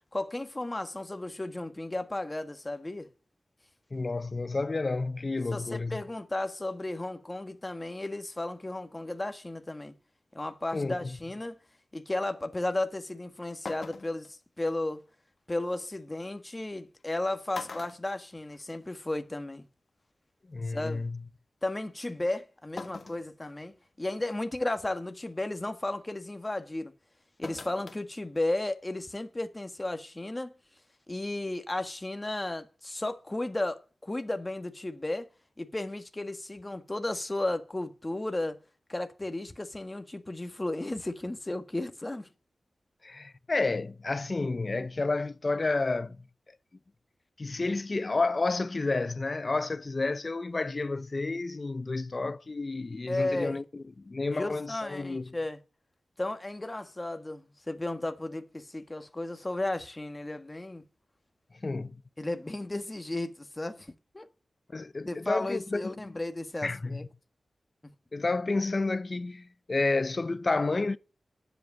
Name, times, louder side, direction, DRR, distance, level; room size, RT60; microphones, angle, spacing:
voice 1, 0.1-3.1 5.5-9.9 10.3-11.6 11.9-15.0 15.5-19.6 20.7-21.1 21.6-26.9 27.4-30.5 31.1-35.3 35.6-38.6 38.9-42.3 53.1-53.6 54.3-55.6 56.2-60.8 62.2-64.2 65.0-67.0, left 2 dB, 25° left, 1.5 m, -34 dB
voice 2, 3.9-6.0 10.7-11.2 20.5-21.2 43.0-46.2 47.4-55.3 61.6-62.0 64.7-65.9 66.6-67.0 68.1-71.0, left 3 dB, 45° left, 0.7 m, -30 dB
sound 1, 13.1-13.2 13.6-14.3 15.9-16.0 17.0-17.2 17.5-18.9 19.3-19.4 20.6-20.7 22.8-23.3 23.8-23.9 24.5-24.8 27.4-28.0 28.4-28.5, left 4 dB, 60° left, 1.4 m, -42 dB
10.0 x 7.9 x 9.5 m
wide cardioid pair, 70°, 0 cm